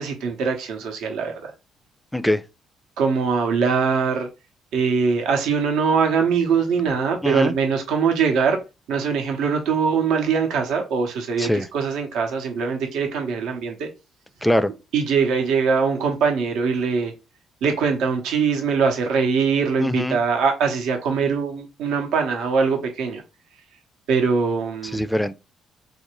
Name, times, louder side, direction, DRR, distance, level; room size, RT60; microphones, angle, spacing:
voice 1, 0.0-1.5 3.0-4.3 4.7-8.6 8.9-13.9 14.9-17.1 17.6-23.2 24.1-25.0, right 5 dB, 80° right, 0.7 m, -22 dB
voice 2, 7.2-7.5 11.4-11.7 14.4-14.7 19.8-20.2 24.9-25.3, left 1 dB, 5° left, 0.3 m, -22 dB
3.2 x 2.5 x 2.9 m
cardioid pair, 100°, 0 cm